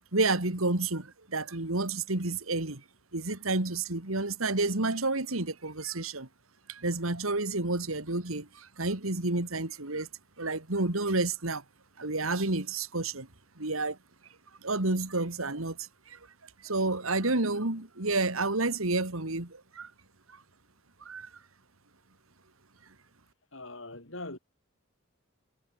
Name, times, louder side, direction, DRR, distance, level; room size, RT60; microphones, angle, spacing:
voice 1, 0.1-2.8 3.1-6.3 6.7-10.1 10.4-11.6 12.0-13.3 13.6-14.0 14.6-16.2 16.6-19.9 21.0-21.3, right 2 dB, 85° right, 2.8 m, -30 dB
voice 2, 23.5-24.4, left 2 dB, 65° left, 4.8 m, -41 dB
head